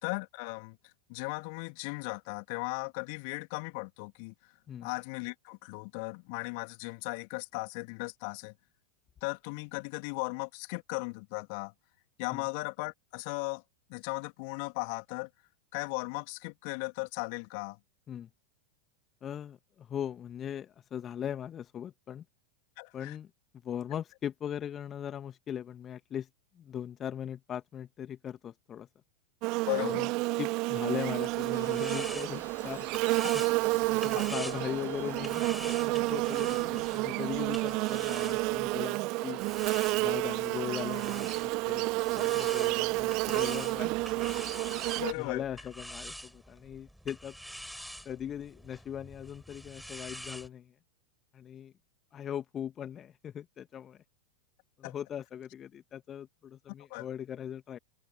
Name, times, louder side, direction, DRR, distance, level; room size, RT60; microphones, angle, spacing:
voice 1, 0.0-0.8 1.1-4.3 4.8-8.5 9.2-11.7 12.2-13.6 13.9-15.3 15.7-17.8 22.8-23.2 29.7-30.1 34.1-34.3 38.5-38.6 45.0-45.4 54.8-54.9 56.9-57.1, left 35 dB, 45° left, 2.6 m, -37 dB
voice 2, 19.2-22.2 22.9-23.3 23.6-26.3 26.5-28.9 29.8-30.1 30.4-32.9 33.9-39.4 40.0-44.4 45.2-47.4 48.0-50.7 51.3-51.7 52.1-54.0 54.8-57.8, left 9 dB, 25° left, 1.8 m, -39 dB
Buzz, 29.4-45.1, right 24 dB, 40° right, 1.0 m, -30 dB
sound 1, 31.2-38.8 39.4-50.5, equal, ahead, 4.9 m, -46 dB
sound 2, 31.5-41.6, left 3 dB, 80° left, 5.8 m, -57 dB
open air
figure-of-eight pair, 90°, 0 cm